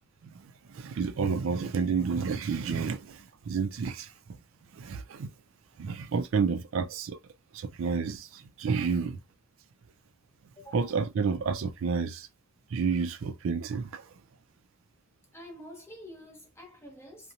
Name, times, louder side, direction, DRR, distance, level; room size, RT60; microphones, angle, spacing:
voice 1, 0.2-4.4 4.7-5.3 5.8-7.2 7.5-9.2 10.7-12.3 12.7-14.1, right 5 dB, 75° right, 0.4 m, -30 dB
voice 2, 10.6-11.0 15.3-17.3, equal, 10° left, 0.9 m, -48 dB
2.6 x 2.1 x 2.7 m
head